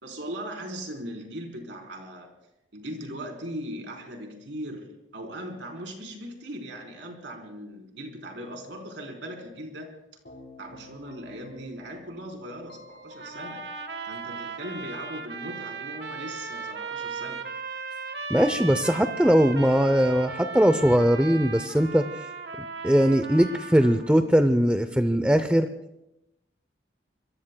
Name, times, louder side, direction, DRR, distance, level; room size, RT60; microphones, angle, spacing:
voice 1, 0.0-2.3 2.7-9.9 10.6-13.6 14.1-17.4, right 1 dB, 80° right, 2 dB, 4.0 m, -39 dB
Keyboard (musical), 10.2-15.2, left 2 dB, 65° left, 5.9 m, -49 dB
sound 1, 13.2-24.2, right 4 dB, 65° right, 1.3 m, -37 dB
voice 2, 18.3-22.0 22.8-25.7, equal, 5° right, 9 dB, 0.6 m, -20 dB
26.5 x 22.0 x 2.3 m, 0.88 s
head